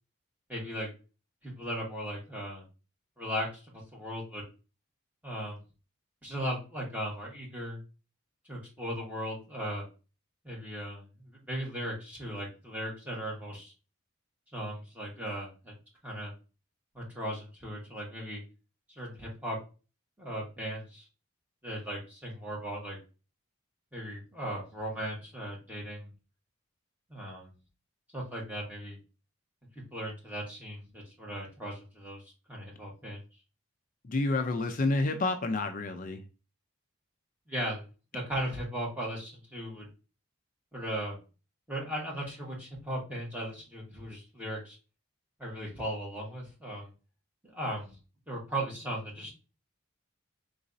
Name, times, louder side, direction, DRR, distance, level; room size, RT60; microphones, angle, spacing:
voice 1, 0.5-0.9 1.4-2.6 3.2-3.6 3.9-4.4 5.2-5.6 6.2-7.8 8.5-9.8 10.4-13.7 14.5-15.7 16.0-16.3 16.9-18.4 18.9-19.6 20.2-21.1 21.6-23.0 23.9-26.1 27.1-27.5 28.1-29.0 29.7-32.2 32.5-33.2 37.5-37.9 38.1-39.9 40.7-41.2 41.7-44.8 45.4-46.9 47.5-48.0 48.3-49.3, equal, 5° right, 1.4 m, -37 dB
voice 2, 34.0-36.2, left 2 dB, 40° left, 0.4 m, -29 dB
4.1 x 3.9 x 2.6 m
head